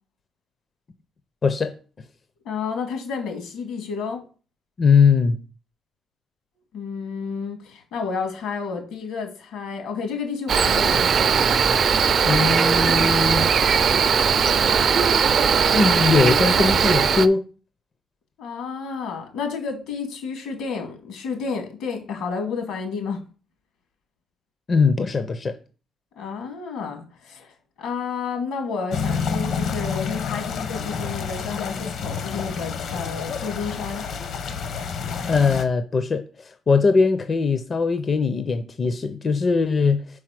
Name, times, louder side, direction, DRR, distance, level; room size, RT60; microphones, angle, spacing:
voice 1, 1.4-1.7 4.8-5.4 12.2-13.5 15.7-17.4 24.7-25.6 35.3-40.0, left 4 dB, 30° left, 0.5 m, -20 dB
voice 2, 2.4-4.2 6.7-11.1 18.4-23.2 26.2-27.5 27.8-34.1, left 5 dB, 80° left, 2.1 m, -31 dB
Cricket, 10.5-17.3, right 6 dB, 40° right, 0.4 m, -19 dB
sound 1, 28.9-35.6, left 6 dB, 60° left, 0.8 m, -29 dB
4.9 x 4.8 x 5.8 m
cardioid pair, 155°, 0 cm